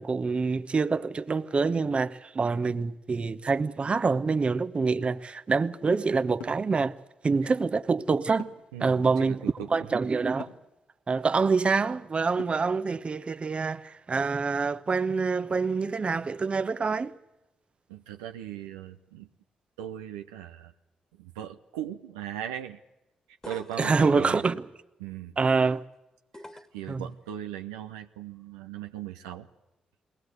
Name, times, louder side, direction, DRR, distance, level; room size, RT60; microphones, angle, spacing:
voice 1, 0.0-6.9 7.2-8.5 8.8-9.4 9.7-10.5 11.1-17.1 23.8-24.6 25.4-25.8 26.9-27.1, right 4 dB, 40° right, 1.0 m, -26 dB
sound 1, 6.4-6.7 8.4-8.8 10.4-10.7 12.4-12.8, left 9 dB, 80° left, 1.8 m, -43 dB
voice 2, 8.7-9.9 17.9-19.3 19.8-20.7 21.1-22.8 23.5-24.4 25.0-25.4 26.3-26.5 26.7-29.5, right 11 dB, 90° right, 0.7 m, -38 dB
sound 2, 23.4-24.2 26.3-26.9 28.4-28.5, left 1 dB, 20° left, 1.9 m, -44 dB
22.0 x 18.5 x 8.1 m
hypercardioid pair, 45°, 3 cm